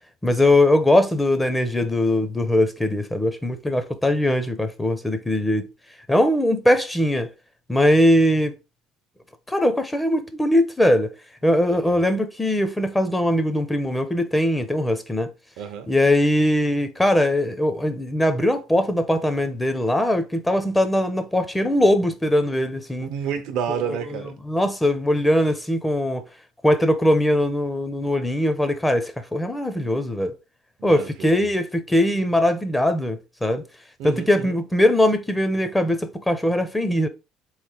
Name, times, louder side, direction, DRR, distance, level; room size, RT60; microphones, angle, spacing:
voice 1, 0.2-5.7 6.1-7.3 7.7-8.5 9.5-11.1 11.4-15.3 15.9-23.1 24.5-26.2 26.6-30.3 30.8-33.6 34.0-37.1, left 1 dB, 10° left, 0.7 m, -21 dB
voice 2, 11.7-12.0 15.6-15.9 23.0-24.4 30.8-31.3 34.0-34.6, right 7 dB, 65° right, 0.6 m, -30 dB
3.8 x 3.2 x 3.4 m
supercardioid pair, 80°, 0 cm